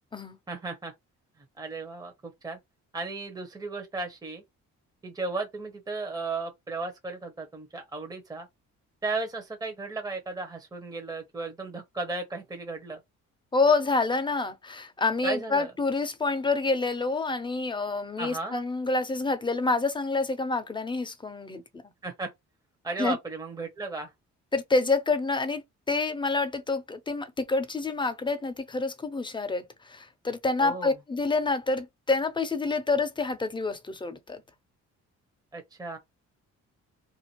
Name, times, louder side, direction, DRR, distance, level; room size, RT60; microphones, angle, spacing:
voice 1, 0.5-0.9 1.6-2.6 2.9-4.4 5.0-8.5 9.0-13.0 15.2-15.7 18.2-18.6 22.0-22.3 22.8-24.1 30.6-30.9 35.5-36.0, right 3 dB, 10° right, 0.8 m, -35 dB
voice 2, 13.5-21.8 23.0-23.2 24.5-34.4, left 3 dB, 15° left, 0.6 m, -27 dB
2.6 x 2.4 x 2.9 m
cardioid pair, 90°, 30 cm